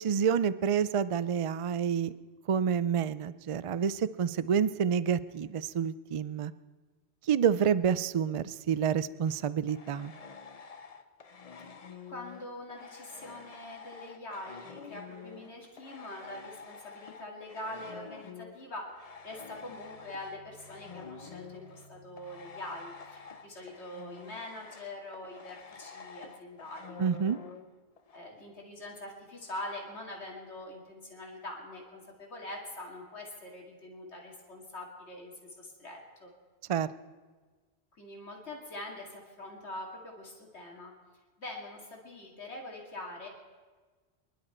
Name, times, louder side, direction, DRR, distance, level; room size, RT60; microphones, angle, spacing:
voice 1, 0.0-2.1 2.5-6.5 7.3-10.1 27.0-27.4 36.7-36.9, right 7 dB, 55° right, 16 dB, 0.3 m, -28 dB
sound 1, 9.2-15.5 15.8-28.2, left 5 dB, 40° left, 0.7 m, -49 dB
voice 2, 12.1-27.0 28.1-36.3 38.0-40.9 41.4-43.3, left 1 dB, 80° left, -1 dB, 2.6 m, -44 dB
sound 2, 18.9-23.7, equal, 60° left, 2.8 m, -59 dB
25.0 x 11.5 x 4.4 m, 1.4 s
omnidirectional pair, 1.1 m